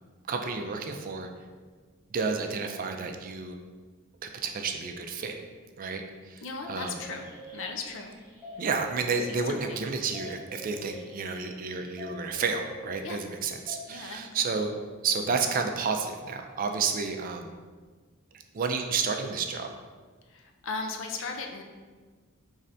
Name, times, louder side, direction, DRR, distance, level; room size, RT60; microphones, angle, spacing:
voice 1, 0.3-1.3 2.1-3.6 4.2-5.3 5.8-6.0 6.3-6.4 6.7-7.0 8.6-14.7 15.0-17.5 18.5-19.7, right 5 dB, 40° right, 5 dB, 0.4 m, -31 dB
voice 2, 6.4-8.1 9.2-9.8 13.0-13.2 13.9-14.3 20.3-21.6, left 4 dB, 65° left, 3 dB, 0.5 m, -37 dB
sound 1, 6.6-13.9, left 1 dB, 10° right, 1.0 m, -46 dB
5.5 x 3.2 x 2.6 m, 1.5 s
head